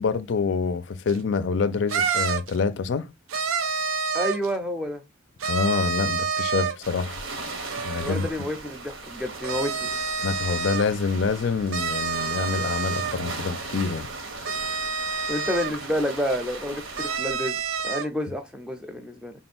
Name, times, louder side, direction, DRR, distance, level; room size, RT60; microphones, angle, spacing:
voice 1, 0.0-3.1 5.5-7.2 7.8-8.3 10.2-14.1, left 5 dB, 60° left, 0.4 m, -26 dB
sound 1, 1.1-1.2 1.9-2.6 3.3-4.5 5.4-6.9 7.7-8.3 9.3-10.9 11.7-13.2 14.4-15.7 17.0-18.1, right 5 dB, 90° right, 0.6 m, -28 dB
voice 2, 4.1-5.0 8.0-9.9 15.3-19.3, equal, 5° right, 0.5 m, -29 dB
sound 2, 6.8-17.2, right 3 dB, 75° right, 1.0 m, -38 dB
3.6 x 2.3 x 4.2 m
head